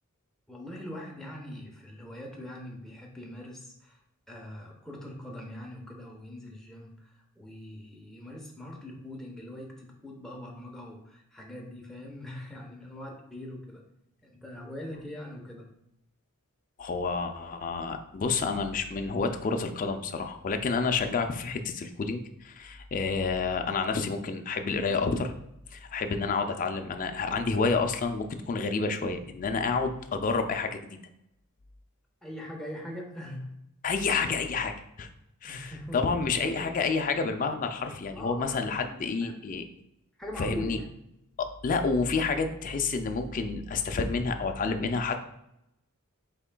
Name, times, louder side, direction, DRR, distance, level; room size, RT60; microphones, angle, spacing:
voice 1, 0.5-4.0 4.3-13.8 14.2-15.7 32.2-33.5 35.4-36.7 38.1-39.4 40.2-40.9, left 1 dB, ahead, -2 dB, 0.7 m, -42 dB
voice 2, 16.8-25.3 25.7-31.0 33.8-34.7 35.0-35.1 35.4-39.6 40.4-40.8 41.4-45.2, left 4 dB, 35° left, 6 dB, 0.3 m, -29 dB
5.7 x 3.7 x 2.2 m, 0.82 s
head